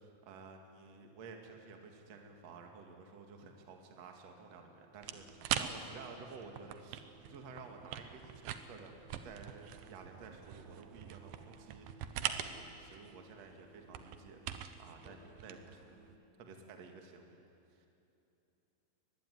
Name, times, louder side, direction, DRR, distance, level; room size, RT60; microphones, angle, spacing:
voice 1, 0.0-16.0 16.4-17.4 17.7-17.9, right 4 dB, 45° right, 3 dB, 2.6 m, -53 dB
sound 1, 5.0-16.2, right 10 dB, 80° right, 2.1 m, -44 dB
voice 2, 15.0-15.4 15.9-16.4, equal, 25° right, 0 dB, 2.5 m, -63 dB
23.5 x 21.0 x 9.5 m, 2.8 s
omnidirectional pair, 5.6 m